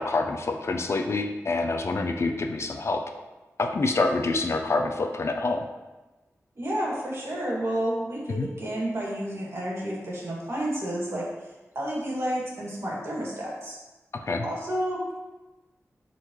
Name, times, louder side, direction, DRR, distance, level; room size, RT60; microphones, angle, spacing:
voice 1, 0.0-3.0 3.6-5.7 8.3-8.5 14.1-14.5, left 3 dB, 60° left, 5 dB, 0.6 m, -26 dB
voice 2, 6.6-13.8 14.4-15.1, right 1 dB, 55° right, -5 dB, 2.4 m, -31 dB
10.0 x 4.1 x 3.2 m, 1.1 s
wide cardioid pair, 105°, 5 cm